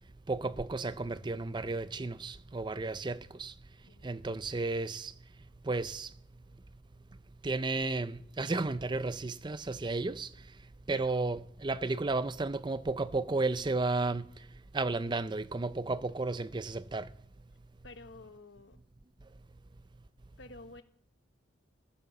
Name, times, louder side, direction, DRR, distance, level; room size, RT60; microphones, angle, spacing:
voice 1, 0.3-3.5 4.0-5.1 5.7-6.1 7.4-10.3 10.9-14.3 14.7-17.1, right 3 dB, 25° right, 0.5 m, -33 dB
voice 2, 3.9-4.2 10.9-11.2 17.8-18.8 20.4-20.8, left 2 dB, 60° left, 1.2 m, -51 dB
15.0 x 10.5 x 7.1 m
head